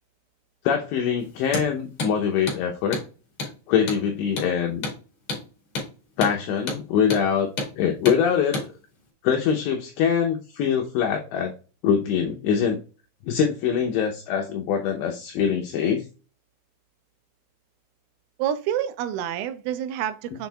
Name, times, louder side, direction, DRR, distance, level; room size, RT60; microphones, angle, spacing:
voice 1, 0.6-3.0 3.7-4.9 6.2-7.5 7.8-8.6 9.2-11.5 11.8-12.8 13.2-16.0, left 7 dB, 80° left, 2.6 m, -23 dB
Hammer, 1.4-1.7 2.0-2.1 2.5-2.6 2.9-3.1 3.4-3.5 3.9-4.0 4.4-4.5 4.8-5.0 5.3-5.4 5.8-5.9 6.2-6.4 6.7-6.8 7.1-7.3 7.6-7.7 8.1-8.2 8.5-8.7, left 2 dB, 45° left, 2.5 m, -29 dB
voice 2, 18.4-20.5, right 10 dB, 85° right, 3.2 m, -28 dB
7.4 x 6.0 x 2.3 m
omnidirectional pair, 5.7 m